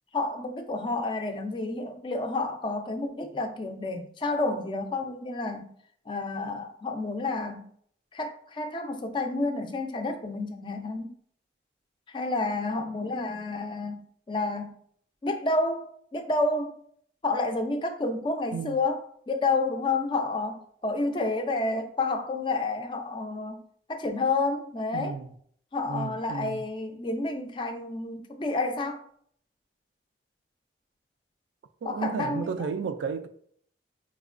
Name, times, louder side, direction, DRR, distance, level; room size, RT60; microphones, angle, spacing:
voice 1, 0.1-5.7 6.1-7.7 8.1-11.2 12.1-14.7 15.2-16.8 17.2-23.6 23.9-25.1 25.7-29.0 31.8-32.7, left 3 dB, 25° left, 0.3 m, -30 dB
voice 2, 24.9-25.3 25.9-26.6 31.8-33.3, right 5 dB, 80° right, 0.3 m, -33 dB
4.6 x 2.2 x 2.4 m
head